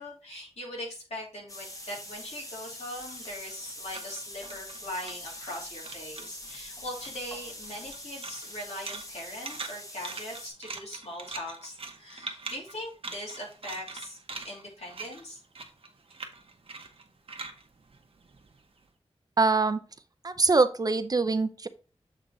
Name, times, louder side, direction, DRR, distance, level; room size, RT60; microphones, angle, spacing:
voice 1, 0.0-15.4, left 1 dB, 85° left, -2 dB, 2.7 m, -41 dB
sound 1, 1.5-10.5, left 1 dB, 30° left, 1.3 m, -44 dB
sound 2, 1.6-5.6 5.8-6.6 6.9-18.8, right 4 dB, 60° right, 0.9 m, -43 dB
voice 2, 19.4-19.8 20.2-21.7, right 3 dB, 35° right, 12 dB, 0.5 m, -23 dB
7.2 x 3.8 x 3.9 m, 0.36 s
wide cardioid pair, 105°, 11 cm